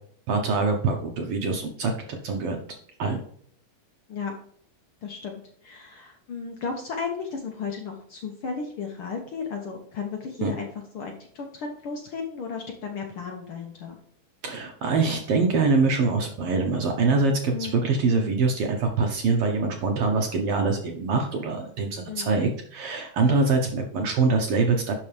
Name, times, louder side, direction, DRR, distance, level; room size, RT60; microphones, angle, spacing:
voice 1, 0.3-2.6 3.0-3.2 10.4-10.5 14.4-24.9, right 4 dB, 70° right, 3 dB, 1.4 m, -24 dB
voice 2, 5.0-10.7 10.9-14.0 17.5-17.8 22.1-22.3, left 5 dB, 70° left, 2 dB, 1.3 m, -34 dB
11.5 x 4.7 x 3.4 m, 0.62 s
omnidirectional pair, 3.7 m